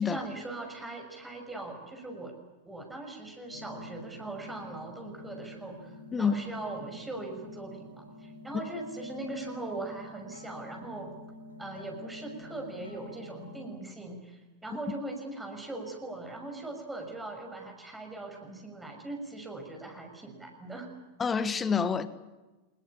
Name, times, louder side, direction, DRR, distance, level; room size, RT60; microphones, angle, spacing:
voice 1, 0.0-2.4 2.6-11.1 11.6-20.9, right 2 dB, 10° right, 6.4 m, -40 dB
sound 1, 3.5-13.7, left 1 dB, 75° left, 4.6 m, -47 dB
voice 2, 21.2-22.1, left 6 dB, 20° left, 1.6 m, -27 dB
26.0 x 21.5 x 8.7 m
figure-of-eight pair, 90°, 0 cm